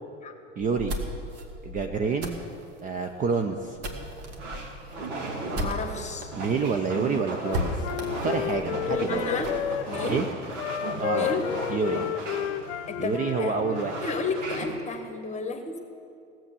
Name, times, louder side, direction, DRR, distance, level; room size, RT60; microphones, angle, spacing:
voice 1, 0.6-1.0 1.6-2.4 2.8-3.8 6.4-7.9 8.2-9.2 10.0-10.3 11.0-11.3 11.7-12.0 13.0-14.0, right 5 dB, 20° right, 5 dB, 0.6 m, -28 dB
sound 1, 0.6-6.3 6.6-6.7 7.0-7.1 7.5-9.6, equal, 40° right, 1.7 m, -35 dB
sound 2, 3.1-14.7, right 2 dB, 65° right, 2.1 m, -37 dB
voice 2, 5.6-6.3 8.7-9.5 9.9-10.2 11.1-11.5 12.9-13.6 14.0-15.8, left 4 dB, 20° left, 7 dB, 1.4 m, -32 dB
Wind instrument woodwind instrument, 7.1-10.1 10.6-13.9, left 11 dB, 60° left, 0.6 m, -32 dB
17.0 x 7.5 x 7.0 m, 2.5 s
figure-of-eight pair, 85°, 38 cm